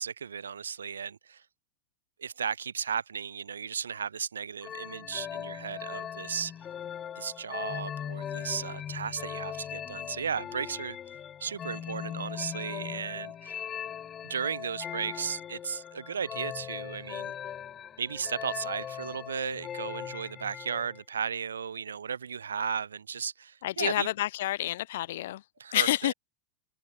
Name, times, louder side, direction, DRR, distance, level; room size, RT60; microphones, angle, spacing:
voice 1, 0.0-1.4 2.2-6.5 7.2-11.0 11.4-13.6 14.2-17.3 18.0-24.1 25.6-26.1, right 7 dB, 85° right, 1.2 m, -35 dB
sound 1, 4.6-21.0, left 9 dB, 30° left, 3.5 m, -39 dB
voice 2, 23.6-25.4 25.7-26.1, left 14 dB, 70° left, 0.7 m, -28 dB
hypercardioid pair, 95°, 0 cm